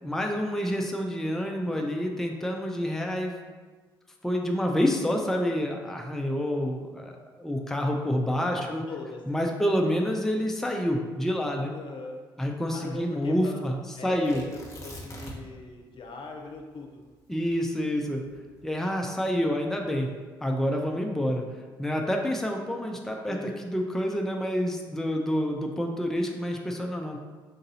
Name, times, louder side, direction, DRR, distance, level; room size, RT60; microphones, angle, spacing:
voice 1, 0.0-3.4 4.2-8.8 9.3-11.7 12.4-14.4 17.3-18.2 18.6-20.1 20.4-21.4 21.8-27.2, equal, 5° left, 1 dB, 0.5 m, -28 dB
voice 2, 8.5-9.5 11.7-12.2 12.7-13.6 14.0-17.0 23.3-23.6, left 3 dB, 45° left, 1 dB, 0.8 m, -40 dB
Tearing, 14.2-15.6 15.9-16.0 16.6-18.9 19.6-20.1, equal, 25° left, 1.1 m, -43 dB
3.9 x 2.6 x 4.0 m, 1.4 s
hypercardioid pair, 50°, 11 cm